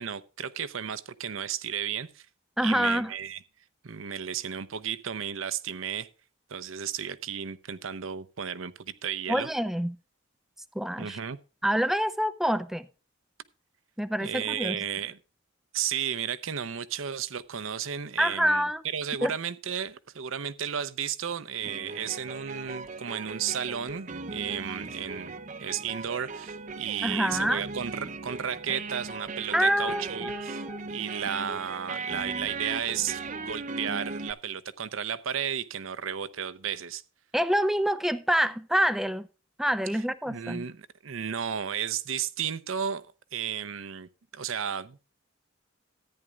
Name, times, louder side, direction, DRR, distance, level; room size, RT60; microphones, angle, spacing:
voice 1, 0.0-2.3 2.6-3.4 3.8-6.1 6.5-9.5 11.0-11.4 14.2-15.2 15.7-37.0 40.3-43.0 43.3-45.1, right 8 dB, 85° right, 0.7 m, -33 dB
voice 2, 2.6-3.1 9.3-10.0 10.7-11.2 11.6-12.9 14.0-14.8 18.2-18.8 19.2-19.3 27.0-27.6 29.5-30.9 37.3-39.3 39.6-40.6, equal, ahead, 0.4 m, -26 dB
sound 1, 21.6-34.3, right 3 dB, 40° right, 0.7 m, -38 dB
14.0 x 9.8 x 2.4 m
head